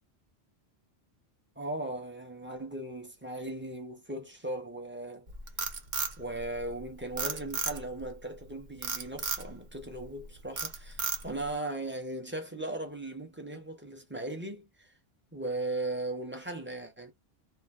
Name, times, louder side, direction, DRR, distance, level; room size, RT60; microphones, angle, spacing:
voice 1, 1.6-5.3 6.2-14.9 15.3-17.1, right 2 dB, 10° right, 0.7 m, -38 dB
Frog, 5.3-6.8 7.2-8.0 8.8-9.5 10.0-10.2 10.6-11.5, right 5 dB, 50° right, 0.9 m, -33 dB
2.6 x 2.1 x 3.2 m
omnidirectional pair, 1.1 m